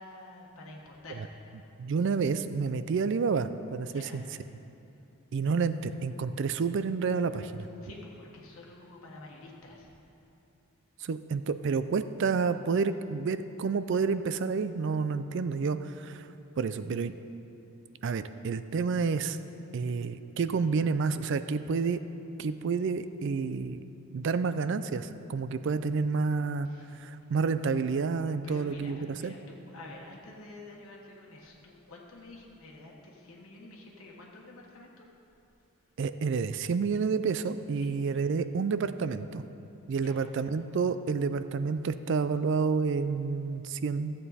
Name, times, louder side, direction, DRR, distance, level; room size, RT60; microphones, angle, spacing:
voice 1, 0.0-1.6 3.9-4.2 7.8-9.9 26.6-27.0 28.4-35.1 37.8-38.0 40.0-40.3, left 2 dB, 70° left, -2 dB, 1.3 m, -49 dB
voice 2, 1.8-4.2 5.3-7.7 11.0-16.3 16.6-17.1 18.0-19.4 19.7-22.0 22.4-23.8 24.1-26.7 27.0-29.4 36.0-39.4 39.9-44.1, right 5 dB, 55° right, 12 dB, 0.3 m, -29 dB
14.0 x 7.8 x 4.1 m, 2.8 s
head